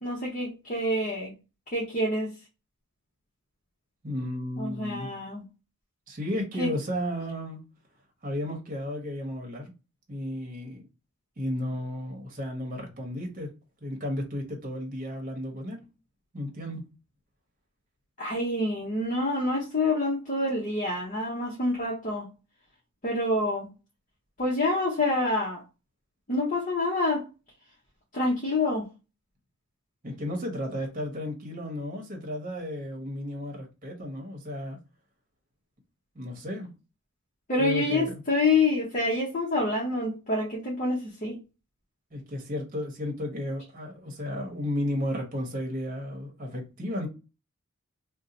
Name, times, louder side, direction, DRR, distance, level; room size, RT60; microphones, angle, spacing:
voice 1, 0.0-1.3 1.7-2.3 4.6-5.4 6.6-6.7 18.2-22.3 23.0-23.7 24.4-25.6 26.3-27.2 28.1-28.9 37.5-41.4, left 2 dB, 35° left, 0.7 m, -27 dB
voice 2, 4.0-5.1 6.1-7.6 8.2-9.7 10.1-10.8 11.4-13.5 13.8-15.8 16.3-16.8 30.0-34.8 36.1-36.7 37.6-38.2 42.1-47.1, left 1 dB, 40° right, 1.0 m, -33 dB
2.7 x 2.1 x 4.0 m
head